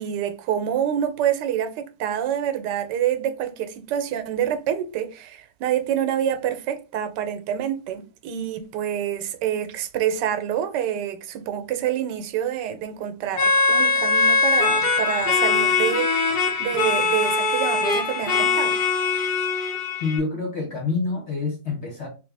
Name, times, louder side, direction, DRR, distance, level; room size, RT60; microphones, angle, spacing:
voice 1, 0.0-18.8, right 10 dB, 85° right, 1.2 m, -27 dB
sound 1, 13.3-20.2, left 4 dB, 85° left, 1.7 m, -21 dB
voice 2, 20.0-22.1, left 4 dB, 50° left, 1.0 m, -27 dB
3.4 x 3.1 x 3.3 m
omnidirectional pair, 1.8 m